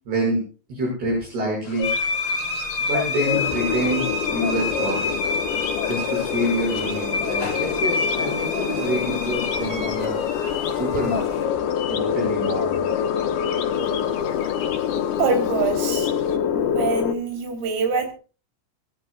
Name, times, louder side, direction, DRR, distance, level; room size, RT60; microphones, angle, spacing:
voice 1, 0.1-0.4 0.7-1.9 2.8-4.1 4.3-5.2 5.8-10.2 10.7-11.5 11.9-12.9, right 1 dB, 50° right, 7.9 m, -27 dB
sound 1, 1.6-16.4, left 9 dB, 60° left, 3.1 m, -35 dB
sound 2, 1.8-11.4, left 3 dB, 25° left, 2.2 m, -28 dB
sound 3, 3.3-17.2, left 8 dB, 90° left, 4.1 m, -26 dB
voice 2, 15.2-16.1 16.5-18.1, right 5 dB, 85° right, 6.0 m, -24 dB
23.5 x 12.0 x 2.4 m
omnidirectional pair, 5.9 m